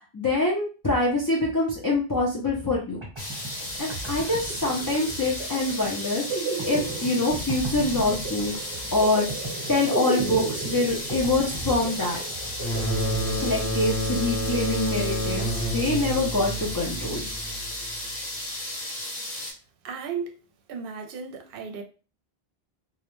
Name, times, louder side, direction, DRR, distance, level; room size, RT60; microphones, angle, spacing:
voice 1, 0.1-3.0 3.8-8.5 8.9-9.3 9.7-12.2 13.4-17.3, left 2 dB, 30° left, 0.5 m, -25 dB
sound 1, 2.7-2.8 3.0-13.6, right 4 dB, 30° right, 0.9 m, -35 dB
sound 2, 3.2-19.5, left 1 dB, 55° left, 0.9 m, -35 dB
sound 3, 12.6-18.0, equal, 85° left, 0.9 m, -29 dB
voice 2, 19.8-20.4 20.7-21.8, right 6 dB, 65° right, 0.7 m, -34 dB
2.4 x 2.1 x 3.0 m
omnidirectional pair, 1.0 m